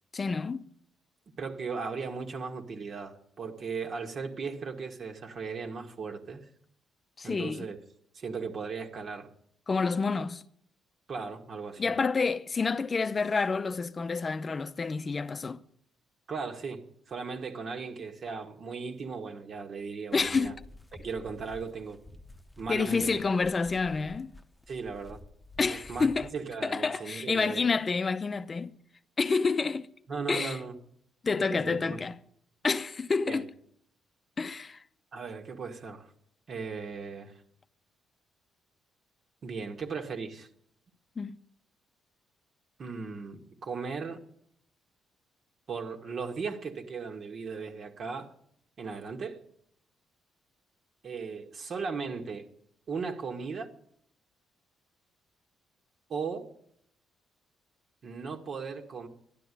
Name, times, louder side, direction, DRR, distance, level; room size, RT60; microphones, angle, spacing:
voice 1, 0.1-0.7 7.2-7.7 9.7-10.4 11.8-15.6 20.1-20.5 22.7-24.3 25.6-26.3 26.6-28.7 29.2-29.9 30.3-30.6 31.2-32.2 32.6-33.5 34.4-34.8 41.2-41.4, left 4 dB, 35° left, 0.7 m, -28 dB
voice 2, 1.4-6.4 7.2-7.8 8.1-9.3 11.1-11.8 16.3-16.8 17.1-20.5 21.0-22.0 22.6-23.2 24.7-25.2 25.7-27.8 30.1-30.7 31.4-32.0 33.3-33.4 35.1-36.1 36.5-37.3 39.4-40.5 42.8-44.2 45.7-48.3 48.8-49.4 51.0-52.5 52.9-53.7 56.1-56.5 58.0-59.1, right 5 dB, 55° right, 1.9 m, -37 dB
sound 1, 20.1-26.4, left 2 dB, 10° left, 1.0 m, -51 dB
12.5 x 11.0 x 10.0 m
cardioid pair, 90°, 0 cm